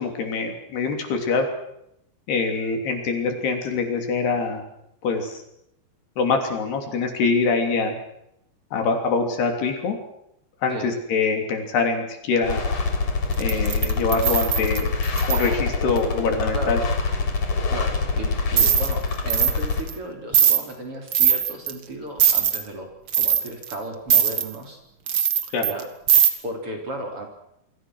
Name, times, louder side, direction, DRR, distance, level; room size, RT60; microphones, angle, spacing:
voice 1, 0.0-1.5 2.3-4.7 5.0-5.4 6.2-7.9 8.7-10.0 10.6-12.6 13.4-14.9 15.3-16.8 25.5-25.7, left 4 dB, 70° left, 5 dB, 5.1 m, -24 dB
sound 1, 12.4-19.8, left 4 dB, 45° left, 4.5 m, -25 dB
sound 2, 13.4-15.5 18.6-18.9 19.3-19.6 19.9-20.0 20.3-20.6 21.1-21.7 22.2-22.6 23.1-23.8 24.1-24.5 25.1-25.8 26.1-26.3, right 8 dB, 65° right, 1.3 m, -20 dB
voice 2, 16.5-16.9 17.7-22.9 23.2-24.8 25.7-25.9 26.4-27.3, right 1 dB, 35° right, 3 dB, 4.4 m, -34 dB
28.0 x 23.5 x 6.4 m, 0.79 s
omnidirectional pair, 5.0 m